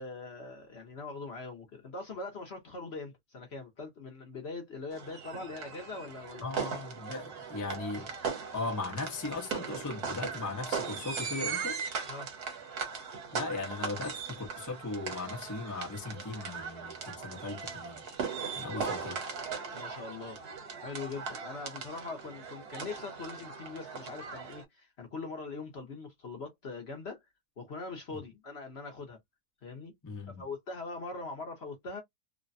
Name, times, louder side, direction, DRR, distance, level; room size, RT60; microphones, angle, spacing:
voice 1, 0.0-6.5 12.1-12.3 18.7-19.0 19.7-20.4 20.8-27.3 27.6-29.2 29.6-29.9 30.3-32.0, left 3 dB, 50° left, 0.8 m, -42 dB
sound 1, 4.9-24.6, right 5 dB, 65° right, 1.5 m, -39 dB
voice 2, 6.4-8.1 8.5-11.8 13.3-18.1 18.5-19.2 28.1-28.2 30.0-30.4, left 3 dB, 25° left, 0.4 m, -38 dB
3.2 x 2.1 x 2.5 m
omnidirectional pair, 1.9 m